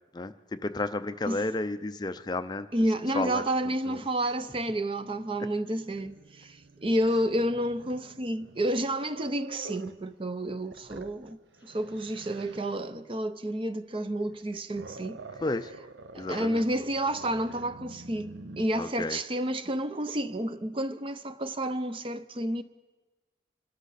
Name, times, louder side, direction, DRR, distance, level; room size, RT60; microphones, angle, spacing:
voice 1, 0.1-2.7 3.1-3.4 3.9-4.0 15.4-15.7 16.1-16.7 18.7-19.2, left 2 dB, 25° left, 0.4 m, -32 dB
voice 2, 2.7-11.4 11.6-15.2 16.1-18.3 18.6-22.6, right 1 dB, 30° right, 0.6 m, -30 dB
Growling, 3.9-10.0 10.5-12.8 14.2-18.7, right 2 dB, 85° right, 0.7 m, -48 dB
26.5 x 13.0 x 4.1 m
head